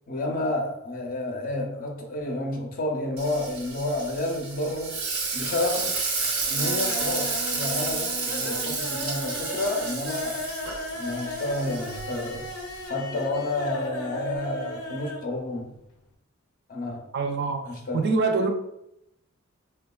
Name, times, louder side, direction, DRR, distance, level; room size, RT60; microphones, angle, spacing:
voice 1, 0.1-5.0 5.3-6.0 6.5-10.4 11.0-12.5 12.9-15.7 16.7-17.1 17.7-18.0, left 2 dB, 40° left, 2 dB, 0.5 m, -30 dB
Frying (food), 3.2-12.9, right 4 dB, 80° right, 0.7 m, -31 dB
sound 1, 4.5-5.1 5.4-5.9 6.3-15.3 15.6-15.7 16.0-16.1, left 1 dB, 90° left, 0.5 m, -36 dB
voice 2, 17.1-18.5, right 4 dB, 50° right, 4 dB, 0.4 m, -25 dB
3.6 x 2.2 x 2.2 m, 0.81 s
head